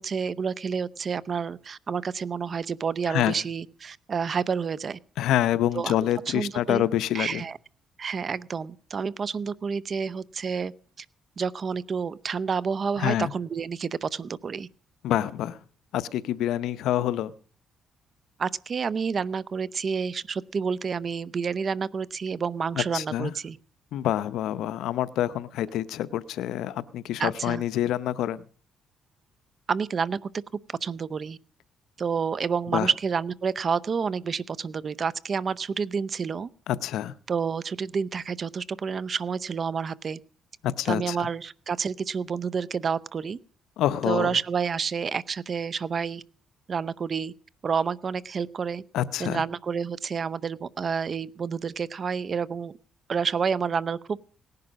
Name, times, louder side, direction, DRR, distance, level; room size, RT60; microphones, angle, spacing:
voice 1, 0.0-5.0 5.7-5.9 6.3-6.8 7.1-7.6 8.0-10.7 11.4-14.7 18.4-23.6 27.2-27.6 29.7-30.3 30.8-31.4 32.0-36.5 37.3-40.2 40.8-43.4 44.0-46.2 46.7-47.3 47.6-48.8 49.2-52.7 53.1-54.2, right 6 dB, 45° right, 19 dB, 0.7 m, -29 dB
voice 2, 5.2-7.4 13.0-13.3 15.0-15.6 15.9-17.3 22.7-23.3 23.9-28.4 32.7-32.9 36.7-37.1 40.6-41.3 43.8-44.4 48.9-49.4, left 12 dB, 85° left, 16 dB, 0.7 m, -27 dB
18.0 x 11.0 x 6.3 m, 0.43 s
cardioid pair, 90°, 0 cm